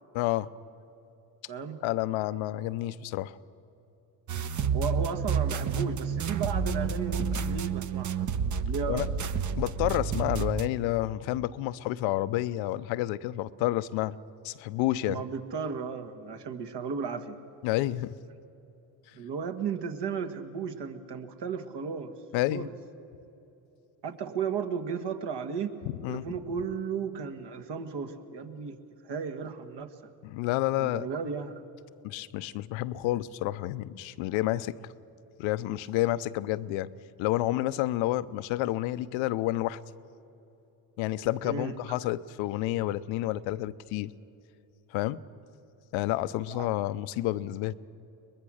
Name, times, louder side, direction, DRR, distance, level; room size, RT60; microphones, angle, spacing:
voice 1, 0.1-0.5 1.8-3.4 8.9-9.1 9.6-14.2 14.4-15.2 17.6-18.1 22.3-22.7 26.0-26.3 30.2-31.1 32.0-34.7 35.4-36.9 37.2-39.8 41.0-44.1 44.9-45.2 45.9-47.7, left 15 dB, 75° left, 15 dB, 0.7 m, -29 dB
voice 2, 1.5-1.8 4.7-8.3 8.7-9.1 15.0-17.4 19.1-22.1 22.5-22.7 24.0-25.8 26.1-28.8 29.0-29.9 30.8-31.6 41.4-41.7 46.5-46.7, right 6 dB, 60° right, 7 dB, 1.9 m, -34 dB
sound 1, 4.3-10.7, right 6 dB, 40° right, 1.0 m, -30 dB
22.5 x 20.5 x 6.4 m, 3.0 s
supercardioid pair, 65°, 47 cm